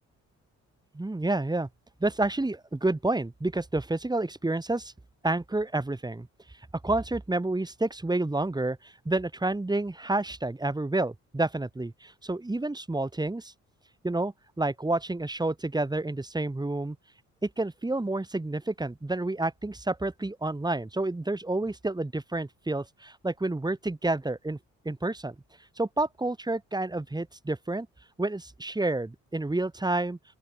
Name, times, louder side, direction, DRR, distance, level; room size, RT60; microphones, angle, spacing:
voice 1, 0.9-1.7 2.0-4.9 5.2-6.3 6.8-13.5 14.0-17.0 17.4-24.6 24.8-25.3 25.8-27.9 28.2-30.2, right 2 dB, 15° right, 3.2 m, -29 dB
open air
cardioid pair, 90°, 30 cm